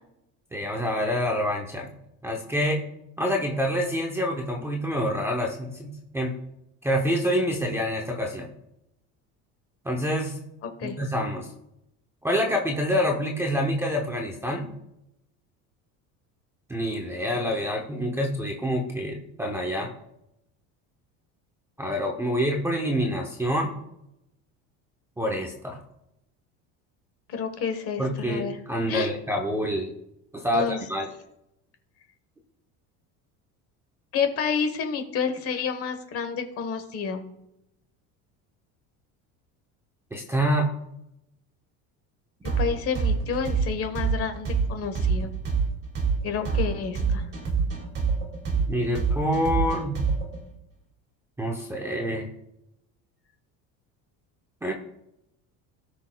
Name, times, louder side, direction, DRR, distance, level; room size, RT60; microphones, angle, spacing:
voice 1, 0.5-1.9 2.2-2.8 3.2-6.4 6.8-8.5 9.8-10.4 10.8-11.5 12.2-14.7 16.7-19.9 21.8-23.8 25.2-25.8 28.0-29.9 30.3-31.1 40.1-40.7 48.7-50.0 51.4-52.3 54.6-54.7, equal, 5° right, 1 dB, 0.7 m, -27 dB
voice 2, 10.6-11.0 27.3-28.6 28.9-29.1 30.5-30.9 34.1-37.2 42.6-45.3 46.2-47.3, left 6 dB, 40° left, 7 dB, 1.2 m, -29 dB
sound 1, 42.4-50.4, right 5 dB, 30° right, 2.1 m, -26 dB
17.0 x 6.2 x 2.3 m, 0.85 s
cardioid pair, 160°, 35 cm